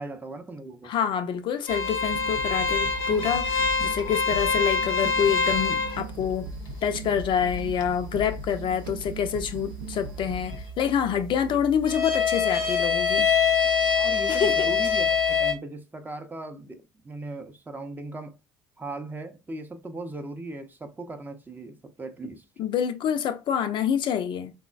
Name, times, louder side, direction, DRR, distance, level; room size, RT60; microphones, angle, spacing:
voice 1, 0.0-0.9 11.5-11.6 13.9-18.4 18.8-22.4, right 2 dB, 15° right, 0.6 m, -38 dB
voice 2, 0.8-6.5 6.8-13.3 14.3-14.6 22.6-24.5, left 8 dB, 50° left, 0.4 m, -27 dB
sound 1, 1.7-15.5, left 5 dB, 80° left, 0.7 m, -26 dB
sound 2, 2.0-10.7, equal, 75° right, 0.4 m, -39 dB
3.7 x 2.0 x 2.3 m
hypercardioid pair, 60°, 11 cm